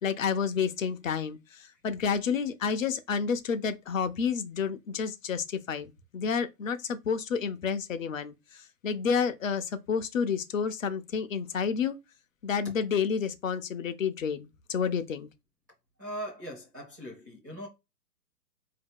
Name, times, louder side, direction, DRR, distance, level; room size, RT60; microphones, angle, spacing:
voice 1, 0.0-8.3 8.8-12.0 12.4-15.3, left 6 dB, 55° left, 0.6 m, -30 dB
voice 2, 16.0-17.7, right 1 dB, 15° right, 0.5 m, -40 dB
4.4 x 2.8 x 3.6 m
hypercardioid pair, 150°, 49 cm